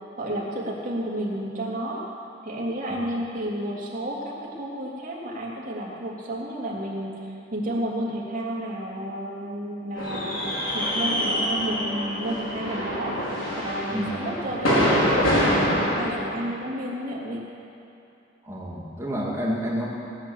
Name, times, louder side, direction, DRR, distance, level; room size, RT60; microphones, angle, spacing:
voice 1, 0.2-2.0 2.4-13.2 13.6-17.5, right 1 dB, 45° right, -4 dB, 3.0 m, -31 dB
sound 1, 10.0-16.0, equal, 80° left, 4.7 m, -25 dB
voice 2, 18.4-19.9, equal, 15° right, -4 dB, 2.5 m, -29 dB
19.0 x 9.9 x 7.3 m, 2.7 s
head